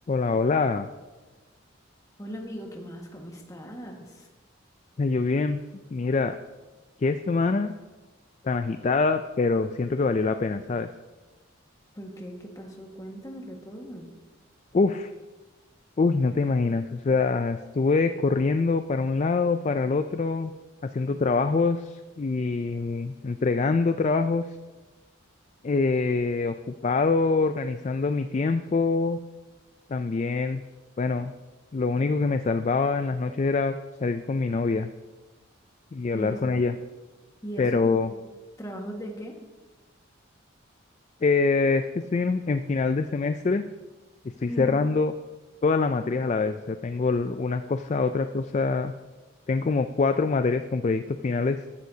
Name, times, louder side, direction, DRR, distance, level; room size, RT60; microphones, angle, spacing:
voice 1, 0.1-0.9 5.0-5.6 5.9-6.4 7.0-7.7 8.4-10.9 14.7-15.1 16.0-20.5 20.8-24.4 25.6-26.5 26.8-29.2 29.9-30.6 31.0-31.3 31.7-34.9 35.9-36.7 37.6-38.1 41.2-43.6 44.4-45.1 45.6-48.9 49.5-51.6, left 4 dB, 35° left, 9 dB, 0.3 m, -25 dB
voice 2, 2.2-4.3 11.9-14.1 36.1-36.7 37.4-38.3 38.6-39.4 44.4-44.9, equal, 15° left, 1 dB, 1.6 m, -39 dB
14.5 x 13.0 x 2.8 m, 1.2 s
head